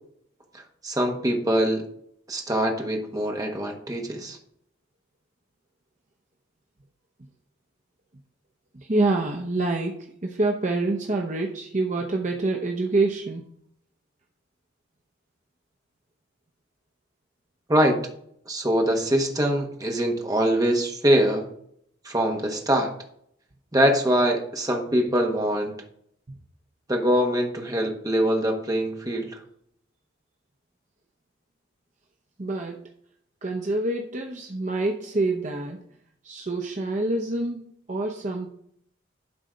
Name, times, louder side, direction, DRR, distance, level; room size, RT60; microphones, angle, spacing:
voice 1, 0.8-1.8 2.3-4.4 17.7-18.0 18.5-21.5 22.0-22.9 23.7-25.7 26.9-29.3, equal, 20° right, 2 dB, 1.3 m, -23 dB
voice 2, 8.7-13.5 32.4-32.8 33.4-35.8 36.2-37.6 37.9-38.5, right 2 dB, 40° right, 1 dB, 0.8 m, -26 dB
11.5 x 4.1 x 5.1 m, 0.68 s
head